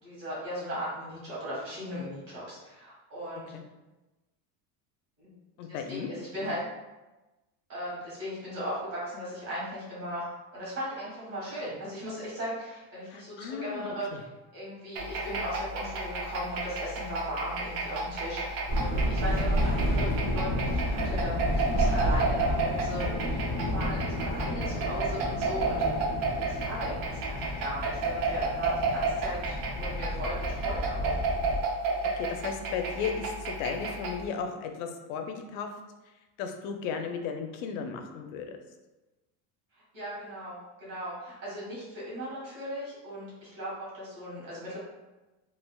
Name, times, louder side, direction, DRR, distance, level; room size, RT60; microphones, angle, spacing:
voice 1, 0.0-3.5 5.2-5.3 5.7-6.6 7.7-14.2 14.5-26.0 26.4-31.2 39.7-44.8, equal, 35° right, -8 dB, 1.4 m, -37 dB
voice 2, 5.6-6.1 6.4-6.5 13.1-14.2 32.1-35.7 36.4-38.6, left 6 dB, 75° left, 5 dB, 0.6 m, -35 dB
sound 1, 15.0-34.3, right 3 dB, 70° right, 0.6 m, -32 dB
sound 2, 18.7-31.6, equal, 25° left, 0.4 m, -31 dB
3.2 x 2.4 x 2.2 m, 1.1 s
cardioid pair, 180°, 42 cm